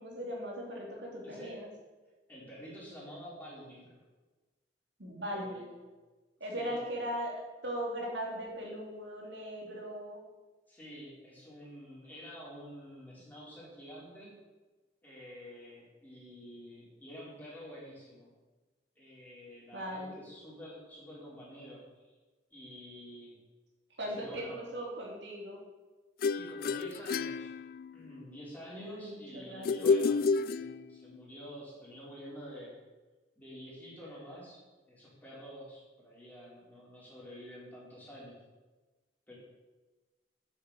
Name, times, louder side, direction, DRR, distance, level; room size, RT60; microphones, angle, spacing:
voice 1, 0.0-1.7 5.0-5.7 6.4-10.2 19.7-20.2 24.0-25.6 28.7-29.9, equal, 80° right, -1 dB, 3.1 m, -39 dB
voice 2, 1.2-1.5 2.3-4.0 5.3-5.8 6.5-6.8 10.7-14.4 15.0-18.3 19.0-21.9 22.5-23.3 24.0-24.6 26.3-27.5 27.9-32.7 33.3-38.4 39.3-39.4, equal, 10° left, -6 dB, 4.8 m, -48 dB
sound 1, 26.2-28.2 29.6-31.2, left 4 dB, 55° left, 0.3 m, -30 dB
8.6 x 8.3 x 8.5 m, 1.2 s
head